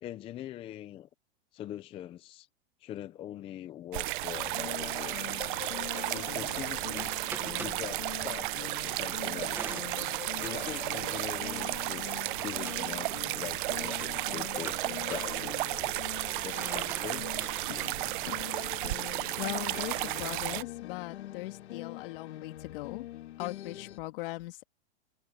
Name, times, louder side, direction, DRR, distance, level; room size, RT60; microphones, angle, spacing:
voice 1, 0.0-1.1 1.5-2.5 2.8-5.2 5.8-7.1 7.6-9.8 10.4-15.6 16.4-17.6, left 12 dB, 15° left, 0.5 m, -43 dB
sound 1, 3.9-20.6, right 20 dB, 50° right, 0.7 m, -34 dB
sound 2, 4.3-24.0, left 14 dB, 75° left, 2.7 m, -44 dB
sound 3, 5.8-20.3, right 3 dB, 5° right, 1.0 m, -49 dB
voice 2, 19.4-23.1 23.4-24.6, left 19 dB, 55° left, 2.7 m, -39 dB
supercardioid pair, 150°, 33 cm